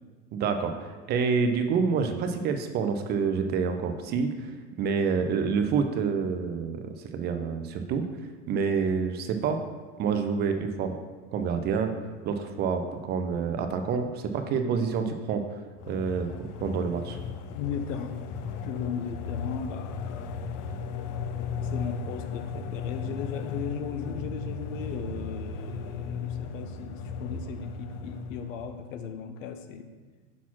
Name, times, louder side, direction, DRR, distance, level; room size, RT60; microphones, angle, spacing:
voice 1, 0.3-0.7 1.1-4.5 4.8-8.0 8.5-9.6 10.0-11.0 11.3-11.9 12.2-15.4 15.9-17.2, right 5 dB, 25° right, 7 dB, 0.4 m, -27 dB
sound 1, 15.8-28.8, left 5 dB, 45° left, 0.5 m, -36 dB
voice 2, 17.5-18.1 18.6-20.5 21.6-29.9, left 7 dB, 85° left, 8 dB, 0.8 m, -37 dB
6.0 x 4.1 x 5.9 m, 1.4 s
supercardioid pair, 130°, 38 cm